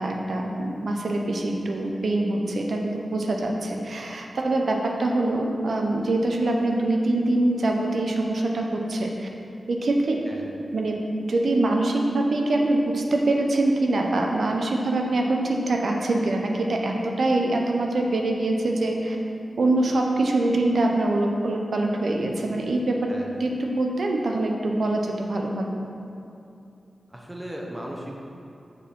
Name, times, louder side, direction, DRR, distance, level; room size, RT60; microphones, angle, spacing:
voice 1, 0.0-9.3 9.7-10.2 10.7-19.2 19.6-25.7, right 2 dB, 70° right, 1 dB, 0.8 m, -24 dB
voice 2, 27.1-28.2, equal, 15° right, -2 dB, 1.2 m, -36 dB
6.6 x 5.1 x 5.4 m, 2.7 s
wide cardioid pair, 80°, 0 cm